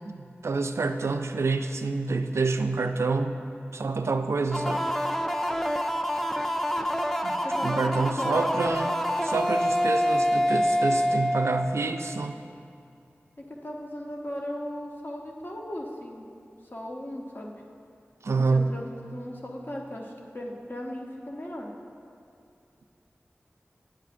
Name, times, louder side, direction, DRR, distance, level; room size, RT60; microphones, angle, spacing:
voice 1, 0.1-3.4 3.7-4.8 7.2-12.4 18.2-18.7, right 3 dB, 80° right, 7 dB, 0.4 m, -27 dB
sound 1, 4.5-12.1, equal, 5° left, 0.4 m, -26 dB
voice 2, 7.4-8.5 13.4-16.3 16.7-17.6 18.4-21.7, left 1 dB, 50° left, -1 dB, 0.9 m, -37 dB
9.3 x 8.8 x 2.5 m, 2.4 s
wide cardioid pair, 50°, 5 cm